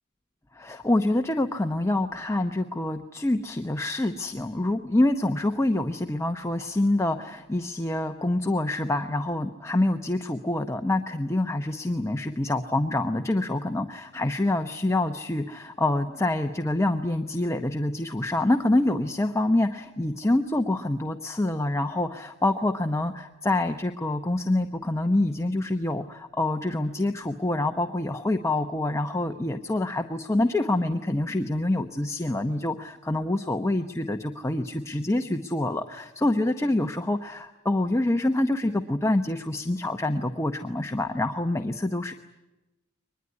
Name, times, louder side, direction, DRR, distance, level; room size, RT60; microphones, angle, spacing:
voice 1, 0.5-42.1, left 1 dB, 15° left, 6 dB, 0.8 m, -26 dB
23.5 x 21.0 x 9.6 m, 1.0 s
head